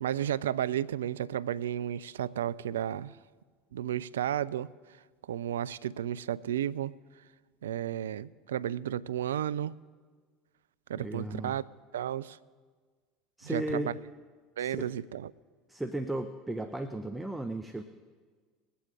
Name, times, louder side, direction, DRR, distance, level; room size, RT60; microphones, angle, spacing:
voice 1, 0.0-3.2 3.7-4.7 5.3-6.9 7.6-9.7 10.9-11.6 11.9-12.4 13.4-13.9 14.6-15.3, right 10 dB, 80° right, 0.3 m, -33 dB
voice 2, 10.9-11.6 13.4-13.9 14.6-14.9 15.7-17.8, right 1 dB, 10° right, 0.7 m, -35 dB
21.0 x 8.4 x 3.9 m
hypercardioid pair, 70°, 0 cm